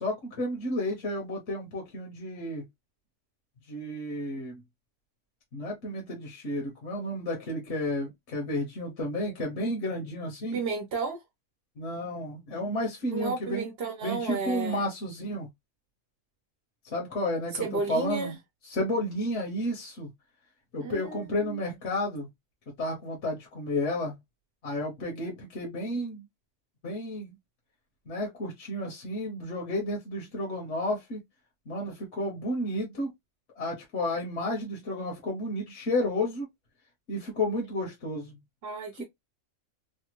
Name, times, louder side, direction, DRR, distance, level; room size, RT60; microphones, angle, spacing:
voice 1, 0.0-2.7 3.7-4.6 5.5-10.6 11.8-13.7 14.0-15.5 16.8-18.4 18.6-20.1 20.7-22.3 22.8-24.2 24.6-26.2 26.8-27.3 28.1-31.2 31.7-33.1 33.6-36.5 37.1-38.4 39.0-39.1, left 1 dB, 70° left, 1.3 m, -32 dB
voice 2, 10.5-11.2 13.1-14.8 17.6-18.3 20.8-21.6 38.6-39.0, right 4 dB, 60° right, 1.1 m, -32 dB
3.3 x 2.2 x 2.9 m
omnidirectional pair, 1.3 m